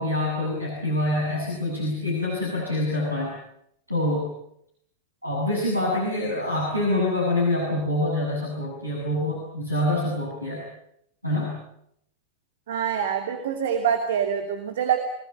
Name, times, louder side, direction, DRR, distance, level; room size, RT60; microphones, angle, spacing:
voice 1, 0.0-3.3 3.9-4.3 5.2-10.6 11.2-11.6, left 1 dB, 90° right, -3 dB, 7.9 m, -26 dB
voice 2, 12.7-15.0, right 8 dB, 60° right, 5 dB, 2.7 m, -25 dB
27.0 x 19.5 x 9.4 m, 0.73 s
figure-of-eight pair, 90°, 0 cm